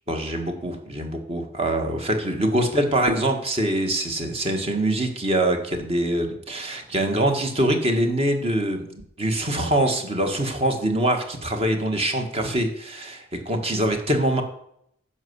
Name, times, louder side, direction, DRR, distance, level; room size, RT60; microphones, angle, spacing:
voice 1, 0.1-8.9 9.2-14.4, right 1 dB, 30° right, 4 dB, 1.6 m, -24 dB
11.0 x 5.7 x 8.1 m, 0.72 s
head